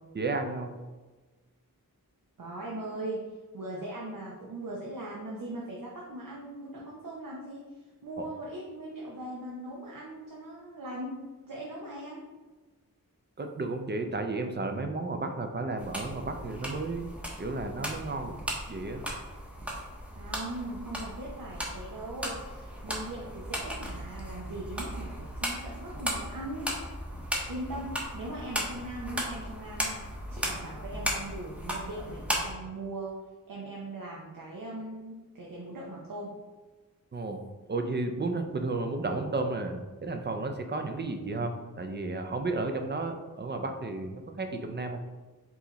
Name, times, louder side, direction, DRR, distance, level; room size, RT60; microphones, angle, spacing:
voice 1, 0.1-0.8 8.2-8.3 13.4-17.0 17.4-18.3 18.7-19.0 37.1-37.4 37.7-45.0, right 3 dB, 30° right, 5 dB, 0.5 m, -33 dB
voice 2, 2.4-3.3 3.5-12.2 20.2-26.8 27.5-36.4, right 1 dB, 70° right, -3 dB, 0.8 m, -40 dB
sound 1, 15.8-32.5, equal, 5° right, 0.8 m, -36 dB
4.7 x 2.8 x 3.9 m, 1.2 s
wide cardioid pair, 90°, 34 cm